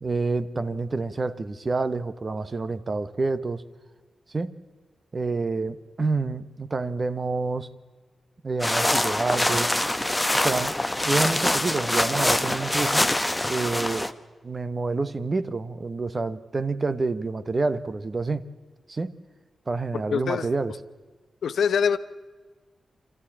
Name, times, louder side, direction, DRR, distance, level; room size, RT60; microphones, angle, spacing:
voice 1, 0.0-3.6 4.3-4.5 5.1-7.7 8.4-9.7 10.3-10.8 11.0-13.0 13.5-14.1 14.4-18.4 18.9-19.1 19.7-20.7, right 3 dB, 35° right, 13 dB, 0.9 m, -28 dB
sound 1, 8.6-14.1, left 1 dB, 10° left, 0.8 m, -24 dB
voice 2, 19.9-20.5 21.4-22.0, left 7 dB, 85° left, 13 dB, 0.7 m, -24 dB
27.0 x 13.5 x 8.6 m, 1.4 s
wide cardioid pair, 115°, 0 cm